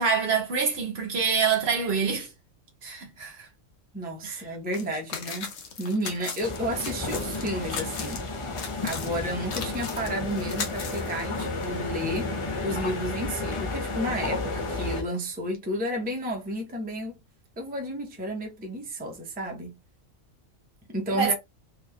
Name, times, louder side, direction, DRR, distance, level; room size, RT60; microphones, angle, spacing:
voice 1, 0.0-2.3 2.8-3.5 4.2-4.4 21.2-21.3, right 5 dB, 60° right, 0.9 m, -26 dB
voice 2, 3.9-5.5 5.8-8.3 8.8-12.3 12.6-17.2 17.6-19.8 20.9-21.3, equal, 10° right, 0.6 m, -32 dB
sound 1, 4.7-4.8 5.1-8.2 8.6-11.7, left 5 dB, 65° left, 1.0 m, -37 dB
sound 2, 6.4-15.0, left 3 dB, 40° left, 0.4 m, -32 dB
3.2 x 2.7 x 2.2 m
omnidirectional pair, 1.3 m